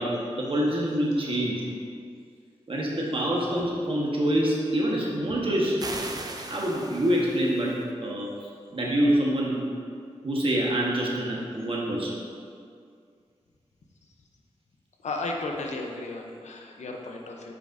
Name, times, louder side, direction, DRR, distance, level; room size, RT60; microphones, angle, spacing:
voice 1, 0.0-1.7 2.7-5.8 6.5-7.7 8.0-8.3 8.7-9.6 10.2-12.2, right 1 dB, 50° right, -3 dB, 1.3 m, -26 dB
sound 1, 5.8-7.8, right 2 dB, 35° right, 0.6 m, -38 dB
voice 2, 15.0-17.5, left 2 dB, 85° left, 1 dB, 0.7 m, -34 dB
8.3 x 5.1 x 2.6 m, 2.2 s
wide cardioid pair, 65°, 12 cm